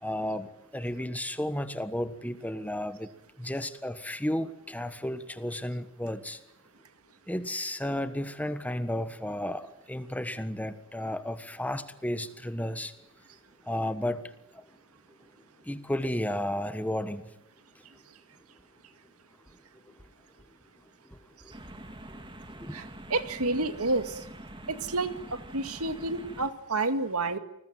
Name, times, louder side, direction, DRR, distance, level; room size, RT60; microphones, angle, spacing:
voice 1, 0.0-3.1 3.4-6.4 7.3-12.9 13.7-14.6 15.6-17.2 21.0-21.5 22.1-22.8, left 1 dB, 5° left, 1.4 m, -33 dB
sound 1, 21.5-26.5, right 1 dB, 20° right, 2.5 m, -45 dB
voice 2, 22.7-24.2 24.7-27.4, right 2 dB, 85° right, 2.1 m, -30 dB
29.5 x 20.5 x 9.3 m
head